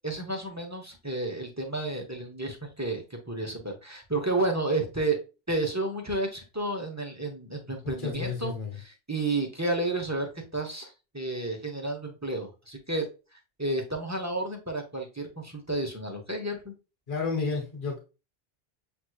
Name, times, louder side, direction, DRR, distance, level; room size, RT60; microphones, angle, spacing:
voice 1, 0.0-5.2 5.5-13.0 13.6-16.7, right 2 dB, 15° right, 1 dB, 1.0 m, -31 dB
voice 2, 7.8-8.8 17.1-18.0, left 4 dB, 55° left, 1 dB, 1.5 m, -31 dB
7.1 x 3.1 x 2.3 m, 0.30 s
omnidirectional pair, 1.0 m